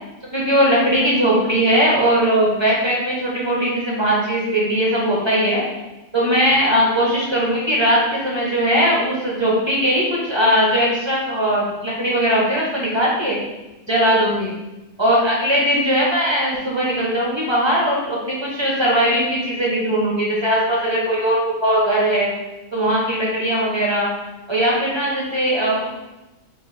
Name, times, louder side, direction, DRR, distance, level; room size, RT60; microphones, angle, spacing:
voice 1, 0.3-5.6 6.1-13.4 13.9-14.5 15.0-22.3 22.7-24.1 24.5-25.9, equal, 35° right, -4 dB, 0.4 m, -19 dB
3.7 x 2.6 x 4.3 m, 1.0 s
omnidirectional pair, 1.4 m